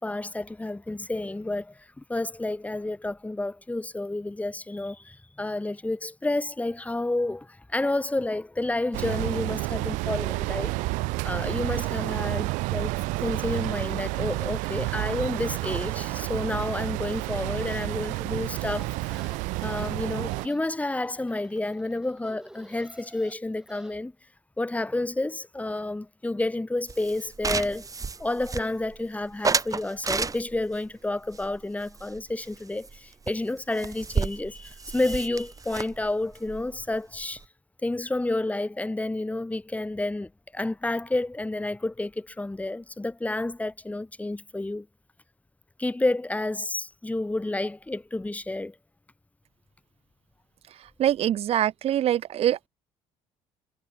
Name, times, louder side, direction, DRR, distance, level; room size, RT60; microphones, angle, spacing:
voice 1, 0.0-10.7 11.2-12.9 13.2-24.1 24.6-27.9 28.2-37.4 37.8-44.9 45.8-48.7, left 2 dB, 10° left, 1.7 m, -30 dB
sound 1, 8.9-20.5, right 24 dB, 80° right, 1.6 m, -30 dB
sound 2, 18.5-24.0, right 1 dB, 5° right, 5.7 m, -52 dB
sound 3, 26.9-29.0 29.4-30.7 31.3-32.6 32.8-33.0 33.3-33.4 33.6-37.4, right 4 dB, 25° right, 1.7 m, -31 dB
voice 2, 51.0-52.7, right 11 dB, 50° right, 0.7 m, -24 dB
supercardioid pair, 75°, 13 cm